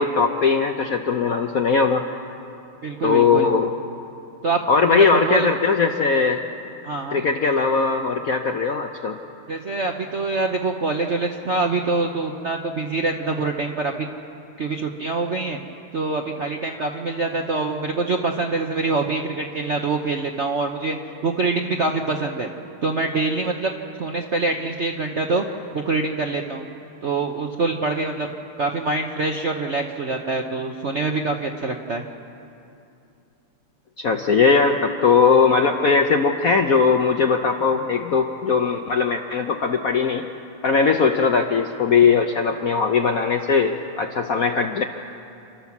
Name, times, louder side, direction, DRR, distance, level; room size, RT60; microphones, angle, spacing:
voice 1, 0.0-2.0 3.0-3.7 4.7-6.4 7.1-9.2 34.0-40.2 40.6-44.8, left 5 dB, 65° left, 4 dB, 0.9 m, -19 dB
voice 2, 2.8-3.5 4.4-4.6 4.9-5.5 6.8-7.2 9.5-14.1 14.6-15.6 15.9-21.0 21.2-22.5 22.8-23.7 24.0-25.4 25.7-26.7 27.0-28.3 28.6-32.0, right 3 dB, 55° right, 3 dB, 0.8 m, -25 dB
29.0 x 12.5 x 7.2 m, 2.6 s
omnidirectional pair, 2.4 m